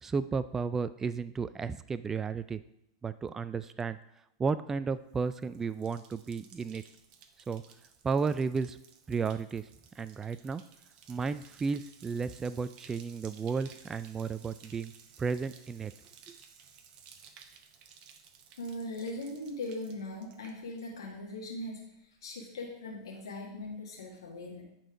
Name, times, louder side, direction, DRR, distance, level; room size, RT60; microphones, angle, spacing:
voice 1, 0.0-2.6 3.0-4.0 4.4-6.8 7.5-7.6 8.0-8.8 9.1-9.7 10.0-10.6 11.1-14.9 15.2-15.9 16.3-16.4, right 5 dB, 15° right, 14 dB, 0.3 m, -33 dB
Bathtub (filling or washing), 5.0-21.1 21.4-21.9, right 7 dB, 40° right, 0.9 m, -57 dB
voice 2, 18.6-21.8 22.2-24.6, left 1 dB, 80° left, -2 dB, 1.8 m, -40 dB
9.1 x 4.3 x 4.9 m, 0.79 s
hypercardioid pair, 115°, 3 cm